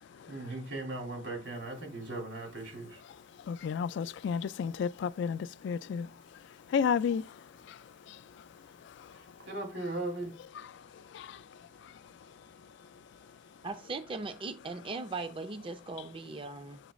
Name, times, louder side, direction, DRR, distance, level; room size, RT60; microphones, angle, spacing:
voice 1, 0.3-3.0 9.1-10.4, right 2 dB, 85° right, 3.1 m, -38 dB
voice 2, 3.5-6.1 6.7-7.2 7.7-7.8 8.1-8.2 11.1-11.4, left 6 dB, 70° left, 0.3 m, -31 dB
voice 3, 13.6-16.8, right 3 dB, 30° right, 0.4 m, -39 dB
7.2 x 3.1 x 5.0 m
head